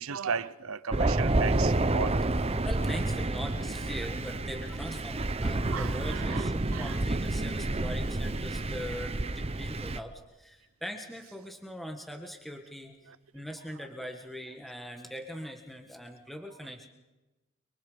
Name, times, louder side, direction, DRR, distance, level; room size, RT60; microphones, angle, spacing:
voice 1, 0.0-2.2 5.7-7.0 13.1-13.2, right 6 dB, 65° right, 0.7 m, -36 dB
Thunder, 0.9-10.0, right 2 dB, 25° right, 0.8 m, -29 dB
voice 2, 2.6-16.9, equal, ahead, 1.7 m, -41 dB
30.0 x 24.0 x 5.2 m
head